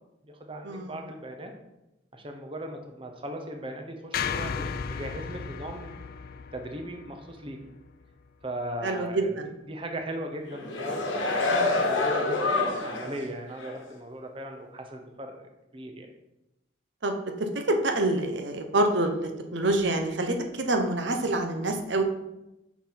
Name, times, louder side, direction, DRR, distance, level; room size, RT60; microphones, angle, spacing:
voice 1, 0.2-1.5 2.1-5.9 6.5-7.6 8.4-9.3 9.7-11.2 11.5-16.1, right 1 dB, 25° right, 4 dB, 0.8 m, -38 dB
sound 1, 4.1-8.4, left 6 dB, 50° left, 0.3 m, -35 dB
voice 2, 8.8-9.5 11.5-11.8 17.0-17.1 17.7-22.0, right 2 dB, 65° right, 5 dB, 0.9 m, -27 dB
sound 2, 10.5-13.2 13.6-13.7, left 2 dB, 80° left, 1.3 m, -27 dB
6.1 x 5.9 x 4.3 m, 0.92 s
head